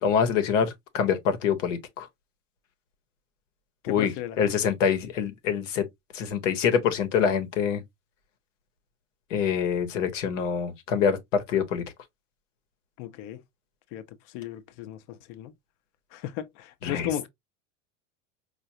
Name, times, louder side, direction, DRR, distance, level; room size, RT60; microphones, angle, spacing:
voice 1, 0.0-2.1 3.9-4.1 4.4-5.8 6.1-7.8 9.3-11.8 16.8-17.1, left 7 dB, 80° left, 1.0 m, -25 dB
voice 2, 3.8-4.4 13.0-13.4 13.9-14.0 14.3-15.5 16.1-17.3, left 11 dB, 55° left, 0.7 m, -35 dB
4.7 x 2.4 x 2.6 m
hypercardioid pair, 90°, 37 cm